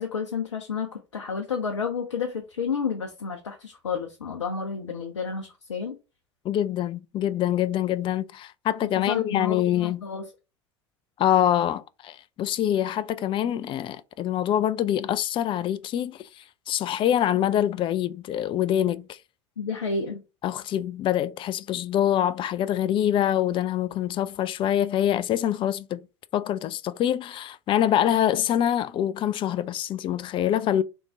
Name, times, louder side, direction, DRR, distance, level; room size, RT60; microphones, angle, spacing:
voice 1, 0.0-5.9 8.8-10.2 19.6-20.2, left 5 dB, 80° left, 0.6 m, -31 dB
voice 2, 6.4-10.0 11.2-19.2 20.4-26.1 26.3-30.8, left 11 dB, 35° left, 0.4 m, -25 dB
3.5 x 3.0 x 3.6 m
figure-of-eight pair, 65°, 15 cm